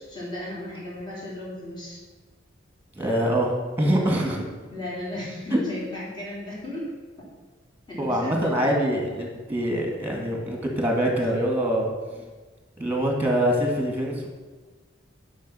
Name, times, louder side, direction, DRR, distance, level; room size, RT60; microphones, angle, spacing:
voice 1, 0.0-2.0 4.7-6.8 7.9-8.5, left 1 dB, 20° left, -6 dB, 3.1 m, -35 dB
voice 2, 3.0-3.5 3.8-4.4 5.5-5.6 8.0-11.9 12.8-14.3, equal, 10° right, 1 dB, 2.0 m, -24 dB
10.5 x 5.9 x 5.6 m, 1.3 s
head